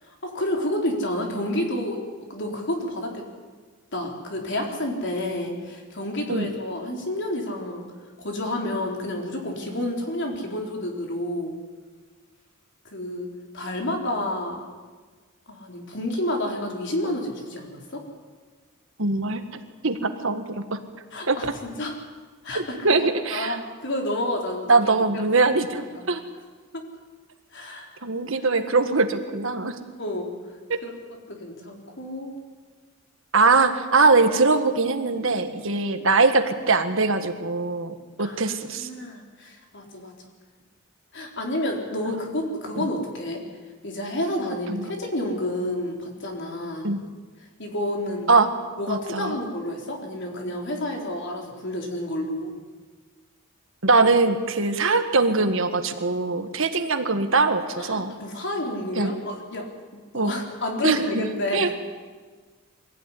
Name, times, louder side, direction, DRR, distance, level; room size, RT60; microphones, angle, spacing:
voice 1, 0.1-2.0 2.3-3.2 3.9-7.9 8.2-11.6 12.9-13.3 13.5-14.6 15.5-18.0 21.1-21.9 22.4-22.8 23.3-24.9 25.5-25.6 25.9-26.0 26.7-26.8 27.5-27.9 30.0-30.3 30.8-30.9 31.3-32.3 38.2-40.1 41.1-43.4 43.8-46.9 47.6-48.3 48.8-52.5 57.8-59.7 60.1-61.7, left 1 dB, 55° left, 1 dB, 4.3 m, -30 dB
voice 2, 19.0-19.4 19.8-20.4 20.7-20.8 21.3-21.5 22.6-23.6 24.7-26.2 28.0-29.8 33.3-38.9 42.1-42.4 42.8-42.9 44.7-44.9 46.8-47.0 48.3-48.5 48.9-49.4 53.8-58.1 59.0-59.1 60.1-60.3 60.8-61.3 61.5-61.7, right 3 dB, 65° right, 8 dB, 1.7 m, -22 dB
23.5 x 16.0 x 9.9 m, 1.4 s
head